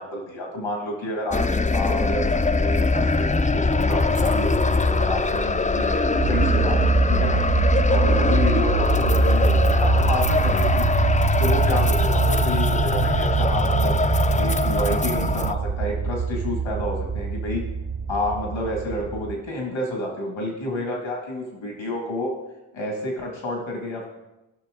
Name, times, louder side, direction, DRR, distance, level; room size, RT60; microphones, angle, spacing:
voice 1, 0.0-1.4 1.7-6.8 7.1-7.4 7.9-10.9 11.4-14.0 14.4-17.6 18.1-22.3 22.7-24.1, left 1 dB, 85° left, 0 dB, 2.2 m, -29 dB
sound 1, 1.3-15.5, left 3 dB, 15° left, 0.5 m, -22 dB
sound 2, 6.2-19.4, right 5 dB, 45° right, 0.8 m, -24 dB
16.5 x 6.1 x 3.8 m, 0.96 s
cardioid pair, 40°, 46 cm